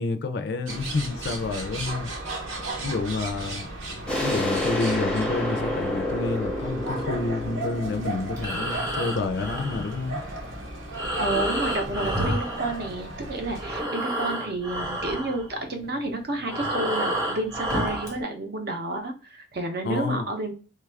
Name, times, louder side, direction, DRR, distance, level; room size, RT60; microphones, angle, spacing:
voice 1, 0.0-2.1 2.8-3.7 4.2-10.2 19.8-20.3, left 3 dB, 55° left, 0.4 m, -29 dB
sound 1, 0.7-13.8, right 2 dB, 85° right, 0.9 m, -36 dB
sound 2, 4.1-9.5, left 1 dB, 5° left, 0.6 m, -29 dB
Breathing, 8.3-13.2 13.5-18.2, right 1 dB, 15° right, 0.9 m, -30 dB
voice 2, 11.2-20.6, right 2 dB, 50° right, 0.7 m, -30 dB
3.2 x 2.3 x 3.3 m
head